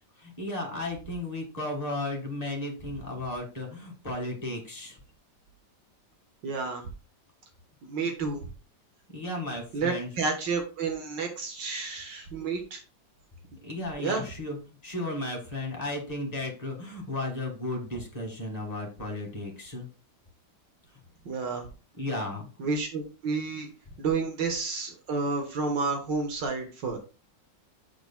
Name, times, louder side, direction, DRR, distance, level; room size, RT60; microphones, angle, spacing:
voice 1, 0.2-5.0 8.0-8.1 9.1-10.1 13.6-19.9 21.9-22.5, left 2 dB, 20° left, 0 dB, 1.9 m, -34 dB
voice 2, 6.4-6.8 7.8-8.4 9.7-12.8 14.0-14.2 21.3-21.6 22.6-23.7 24.0-27.0, right 4 dB, 70° right, 4 dB, 1.8 m, -30 dB
7.9 x 6.9 x 2.2 m, 0.33 s
omnidirectional pair, 2.0 m